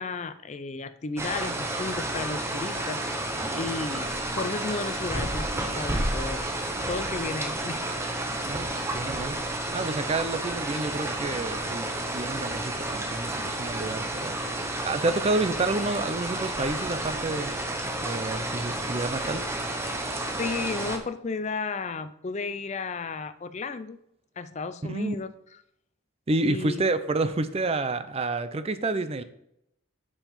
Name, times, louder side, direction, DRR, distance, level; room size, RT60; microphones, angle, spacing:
voice 1, 0.0-3.3 3.6-6.4 6.9-7.9 20.4-24.0 24.4-25.3 26.4-26.9, left 4 dB, 35° left, 12 dB, 0.4 m, -33 dB
sound 1, 1.2-21.0, right 1 dB, 15° right, 0.9 m, -31 dB
voice 2, 8.9-9.4 9.7-14.4 14.8-17.6 18.0-19.4 24.9-25.2 26.3-29.2, right 2 dB, 30° right, 12 dB, 0.5 m, -29 dB
7.2 x 5.5 x 5.6 m, 0.76 s
head